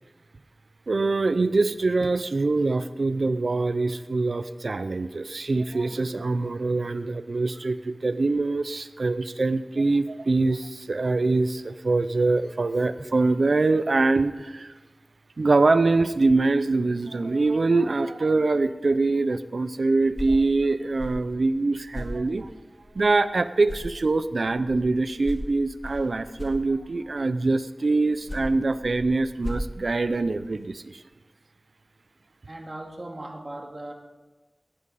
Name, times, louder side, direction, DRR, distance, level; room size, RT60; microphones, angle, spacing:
voice 1, 0.9-14.7 15.4-22.5 22.9-31.0, right 3 dB, 80° right, 12 dB, 0.5 m, -24 dB
sound 1, 19.9-23.3 23.6-27.2 28.0-30.7, equal, 40° left, 2.3 m, -38 dB
voice 2, 32.5-33.9, right 1 dB, 45° right, 2 dB, 2.1 m, -38 dB
18.0 x 12.5 x 4.1 m, 1.2 s
wide cardioid pair, 65°, 0 cm